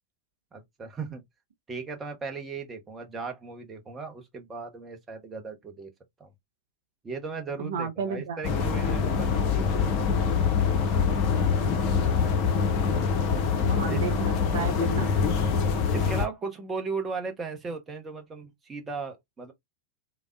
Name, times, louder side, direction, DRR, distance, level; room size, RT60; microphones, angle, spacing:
voice 1, 0.5-1.2 1.7-5.9 6.2-6.3 7.0-9.8 13.9-14.0 15.9-19.5, right 4 dB, 20° right, 0.7 m, -37 dB
voice 2, 7.6-8.4 13.6-15.1, right 6 dB, 60° right, 0.5 m, -32 dB
sound 1, 8.4-16.3, left 6 dB, 40° left, 0.6 m, -24 dB
3.4 x 2.0 x 2.3 m
figure-of-eight pair, 90°, 0 cm